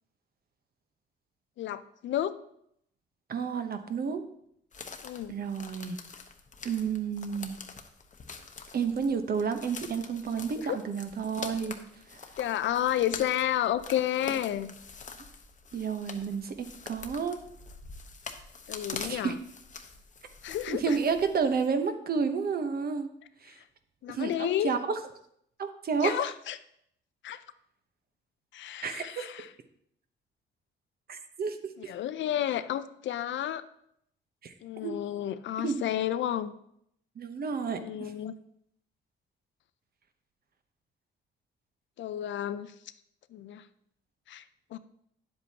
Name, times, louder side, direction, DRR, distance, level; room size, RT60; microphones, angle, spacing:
voice 1, 1.6-2.4 5.0-5.4 10.6-10.8 12.4-14.7 18.7-19.4 20.4-21.0 23.6-23.7 24.0-24.7 26.0-26.6 27.2-27.4 28.5-29.5 31.9-33.6 34.6-36.5 37.7-38.3 42.0-42.7 43.3-43.7 44.3-44.4 44.7-44.8, left 11 dB, 70° left, 13 dB, 0.5 m, -31 dB
voice 2, 3.3-4.2 5.3-6.0 6.6-7.6 8.7-11.8 12.1-12.2 15.7-17.4 18.9-19.3 20.7-23.1 23.4-23.6 24.1-24.8 25.6-26.2 28.8-29.2 31.1-31.9 34.4-34.5 34.8-34.9 35.6-35.8 37.2-38.1, right 6 dB, 50° right, 8 dB, 1.0 m, -31 dB
sound 1, 4.7-21.7, left 5 dB, 40° left, 1.0 m, -45 dB
10.0 x 7.7 x 2.9 m, 0.72 s
cardioid pair, 90°, 20 cm